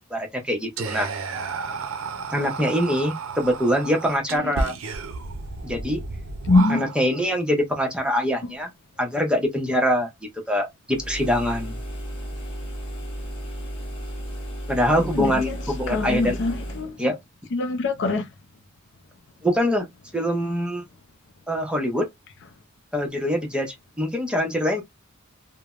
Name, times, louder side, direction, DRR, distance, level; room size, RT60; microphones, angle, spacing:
voice 1, 0.1-1.1 2.3-4.7 5.6-6.0 6.7-8.7 9.0-10.1 10.5-11.8 14.7-16.4 17.0-17.2 19.4-19.9 20.1-20.9 21.5-22.1 22.9-24.8, equal, 5° right, 0.7 m, -24 dB
Whispering, 0.8-7.2, right 4 dB, 75° right, 0.5 m, -32 dB
voice 2, 6.5-6.9 15.1-15.6 15.9-17.0 17.5-18.3, left 2 dB, 60° left, 0.4 m, -23 dB
sound 1, 10.9-16.9, equal, 25° left, 1.1 m, -34 dB
3.2 x 2.1 x 2.3 m
head